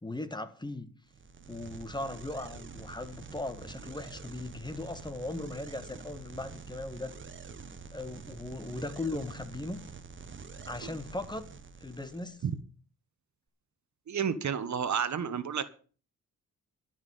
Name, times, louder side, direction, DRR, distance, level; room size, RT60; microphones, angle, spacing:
voice 1, 0.0-0.9 1.5-7.1 7.9-9.8 10.6-11.4 11.8-12.4, left 2 dB, 15° left, 1.6 m, -38 dB
sound 1, 1.1-12.5, right 4 dB, 35° right, 1.4 m, -47 dB
voice 2, 14.1-15.6, right 7 dB, 60° right, 1.3 m, -31 dB
12.0 x 6.0 x 9.1 m
cardioid pair, 80°, 32 cm